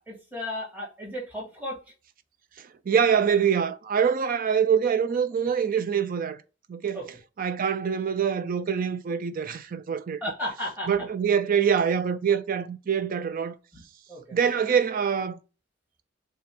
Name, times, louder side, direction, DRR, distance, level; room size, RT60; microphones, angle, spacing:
voice 1, 0.0-1.8 6.9-7.0 10.2-10.9 13.7-13.8 14.1-14.4, left 1 dB, 10° right, 1.9 m, -34 dB
voice 2, 2.6-6.4 6.7-7.0 7.4-10.2 10.9-13.5 14.3-15.4, right 7 dB, 45° right, 0.4 m, -25 dB
6.8 x 2.3 x 3.3 m
head